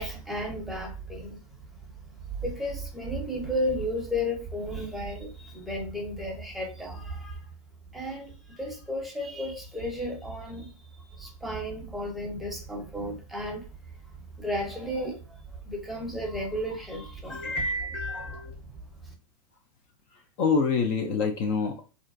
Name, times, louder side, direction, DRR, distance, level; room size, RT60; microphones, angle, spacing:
voice 1, 0.0-1.4 2.4-7.3 7.9-10.7 11.2-13.6 14.4-15.2 15.7-17.5 18.1-18.4, equal, ahead, 0.7 m, -33 dB
voice 2, 17.3-18.5 20.4-21.7, left 4 dB, 35° left, 0.4 m, -27 dB
2.4 x 2.1 x 2.4 m
hypercardioid pair, 105°, 21 cm